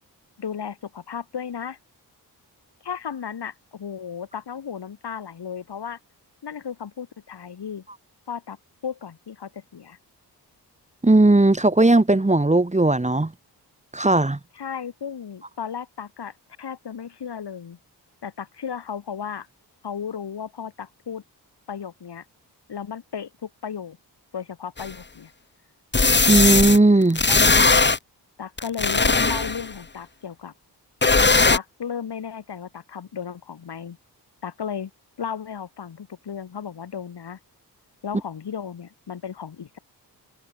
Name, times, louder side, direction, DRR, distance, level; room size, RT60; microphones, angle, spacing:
voice 1, 0.4-1.8 2.8-6.0 6.4-7.8 8.3-8.6 8.8-10.0 14.6-17.8 18.2-19.5 19.8-21.2 21.7-22.2 22.7-24.0 24.3-25.3 27.3-27.4 28.4-30.5 31.5-34.0 34.4-34.9 35.2-37.4 38.0-39.8, left 7 dB, 75° left, 6.0 m, -34 dB
voice 2, 11.0-13.3 13.9-14.4 26.3-27.2, right 2 dB, 15° right, 2.8 m, -17 dB
sound 1, 24.8-24.9 25.9-26.8 27.1-28.0 28.6-29.7 31.0-31.6, left 3 dB, 25° left, 2.5 m, -18 dB
wide cardioid pair, 110°, 40 cm